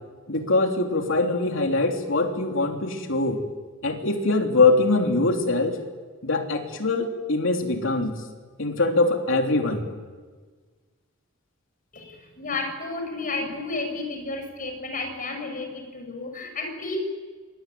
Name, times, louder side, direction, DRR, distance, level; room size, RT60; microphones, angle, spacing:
voice 1, 0.3-3.4 3.8-5.8 6.2-8.2 8.6-9.8, left 3 dB, 65° left, 3 dB, 3.5 m, -23 dB
voice 2, 11.9-17.0, left 3 dB, 40° left, 4 dB, 6.7 m, -32 dB
25.5 x 22.0 x 9.4 m, 1.4 s
head